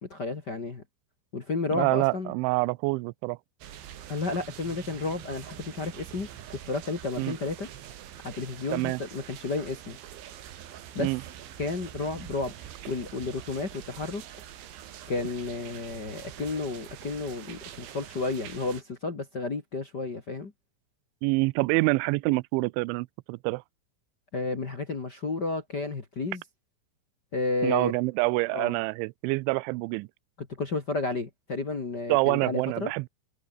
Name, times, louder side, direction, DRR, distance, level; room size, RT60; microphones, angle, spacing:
voice 1, 0.0-0.8 1.3-2.3 4.1-6.3 6.6-7.7 8.2-10.0 10.9-11.1 11.6-14.2 15.1-20.5 24.3-26.4 27.3-27.9 28.5-28.8 30.4-32.9, left 3 dB, 45° left, 1.3 m, -32 dB
voice 2, 1.7-3.4 7.2-7.3 8.7-9.0 11.0-11.2 21.2-23.6 27.6-30.1 32.1-33.1, right 25 dB, 90° right, 2.7 m, -26 dB
sound 1, 3.6-18.8, right 10 dB, 70° right, 4.6 m, -45 dB
open air
omnidirectional pair, 5.9 m